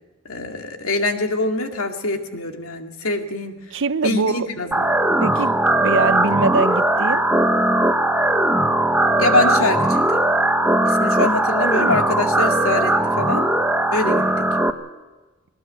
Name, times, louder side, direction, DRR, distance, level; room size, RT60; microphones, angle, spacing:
voice 1, 0.3-3.6 4.0-5.0 9.2-10.2 10.8-13.5 13.9-14.5, left 2 dB, 75° left, 5 dB, 2.2 m, -24 dB
voice 2, 3.7-4.5 5.2-7.2, right 3 dB, 60° right, 15 dB, 0.7 m, -23 dB
sound 1, 4.7-14.7, right 1 dB, 10° right, 0.9 m, -19 dB
20.5 x 18.5 x 8.0 m, 1.2 s
head